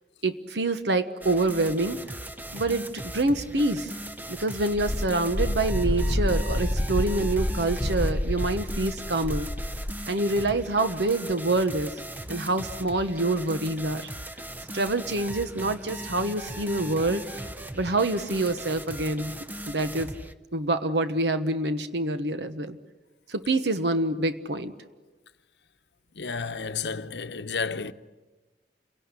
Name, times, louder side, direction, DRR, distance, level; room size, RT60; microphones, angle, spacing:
voice 1, 0.2-2.0 2.5-3.9 4.3-9.5 10.1-12.0 12.3-14.1 14.7-17.5 17.7-19.4 19.7-20.1 20.5-22.8 23.3-24.7, right 2 dB, 70° right, 1.2 m, -26 dB
sound 1, 1.2-20.3, right 1 dB, 10° right, 0.8 m, -39 dB
Wind, 4.7-10.0, left 1 dB, 20° left, 1.0 m, -28 dB
voice 2, 26.1-27.9, left 5 dB, 75° left, 0.9 m, -31 dB
29.0 x 17.5 x 9.7 m
head